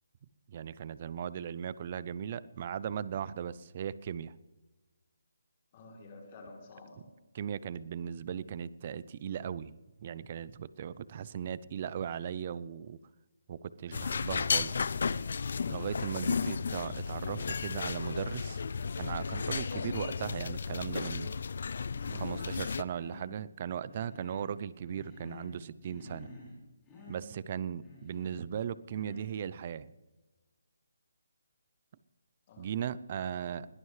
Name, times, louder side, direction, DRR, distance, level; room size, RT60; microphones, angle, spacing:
voice 1, 0.5-4.3 7.3-9.7 10.0-13.0 13.5-14.9 15.7-18.6 19.0-21.3 22.1-26.3 27.1-29.9 32.6-33.7, right 8 dB, 30° right, 18 dB, 0.5 m, -37 dB
voice 2, 5.7-7.1 32.5-32.7 33.1-33.6, left 3 dB, 25° left, 1 dB, 3.3 m, -51 dB
sound 1, 13.9-22.8, left 5 dB, 55° left, 0.5 m, -34 dB
Human voice, 21.9-22.6 22.8-23.3 23.8-24.5 24.8-25.6 25.8-26.6 26.8-27.2 27.8-28.4 28.9-29.3, left 3 dB, 10° left, 5.0 m, -50 dB
21.0 x 16.5 x 3.3 m, 1.2 s
hypercardioid pair, 170°, 0 cm